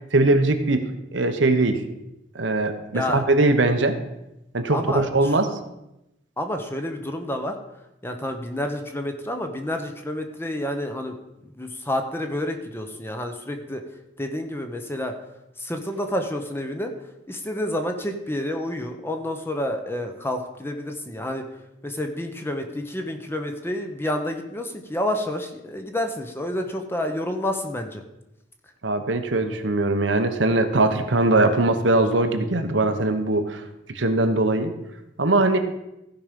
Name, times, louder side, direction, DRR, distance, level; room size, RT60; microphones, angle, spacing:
voice 1, 0.1-0.8 1.1-1.8 2.3-4.0 4.5-5.5 28.8-33.6 33.9-34.7 35.2-35.6, right 2 dB, 75° right, 7 dB, 1.0 m, -21 dB
voice 2, 2.9-3.2 4.7-5.3 6.4-7.5 8.0-11.2 11.6-13.8 14.2-15.1 15.6-16.9 17.3-21.5 21.8-28.0, left 1 dB, 10° left, 5 dB, 1.0 m, -29 dB
15.5 x 5.2 x 5.2 m, 0.91 s
head